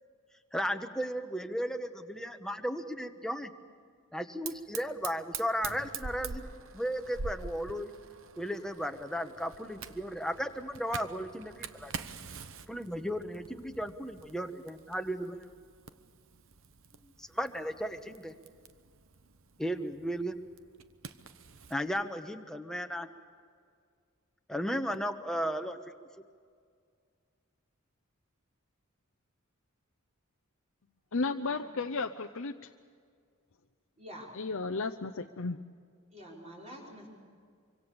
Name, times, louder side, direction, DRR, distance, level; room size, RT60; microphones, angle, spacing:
voice 1, 0.5-3.5 4.1-7.9 8.4-11.9 12.7-15.5 17.2-18.3 19.6-20.4 21.7-23.1 24.5-25.8, equal, 5° left, 1.2 m, -35 dB
Fire, 4.4-21.8, right 5 dB, 65° right, 1.0 m, -46 dB
voice 2, 31.1-32.5 34.3-35.6, left 3 dB, 65° left, 0.7 m, -33 dB
voice 3, 34.0-34.3 36.1-37.1, equal, 30° right, 5.7 m, -47 dB
25.0 x 25.0 x 6.9 m
head